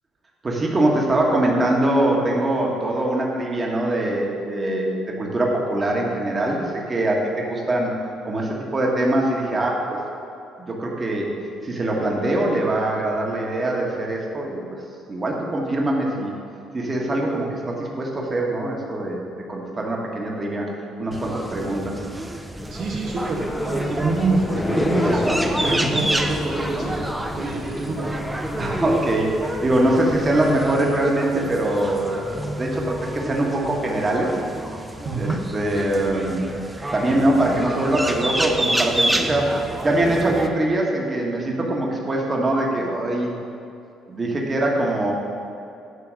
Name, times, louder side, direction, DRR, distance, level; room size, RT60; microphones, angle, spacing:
voice 1, 0.4-4.9 5.2-6.6 6.9-7.9 8.2-9.9 10.6-11.3 11.6-14.6 15.1-16.3 16.7-19.2 19.5-20.7 21.0-22.0 25.6-25.9 28.6-34.4 35.1-36.4 36.9-39.6 39.8-43.4 44.1-45.1, right 1 dB, 30° right, -1 dB, 1.5 m, -23 dB
sound 1, 21.1-40.5, right 1 dB, 10° right, 0.7 m, -28 dB
sound 2, 22.6-30.7, left 1 dB, 25° left, 0.7 m, -30 dB
voice 2, 22.7-28.2 35.0-35.4, right 3 dB, 60° right, -3 dB, 1.1 m, -26 dB
9.7 x 3.5 x 6.3 m, 2.7 s
supercardioid pair, 70°, 0 cm